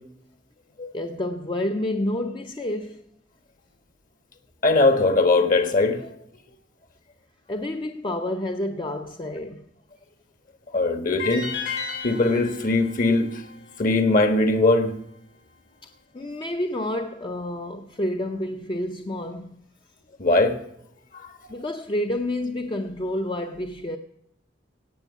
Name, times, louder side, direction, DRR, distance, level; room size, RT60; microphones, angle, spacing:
voice 1, 0.9-3.0 7.5-9.7 15.8-19.5 21.5-24.0, left 1 dB, 25° left, 0.7 m, -29 dB
voice 2, 4.6-6.1 10.7-11.5 12.0-13.3 13.8-15.0 20.2-20.5, left 2 dB, 50° left, 1.5 m, -20 dB
sound 1, 11.2-14.3, left 5 dB, 70° left, 7.5 m, -34 dB
17.5 x 6.2 x 8.2 m
head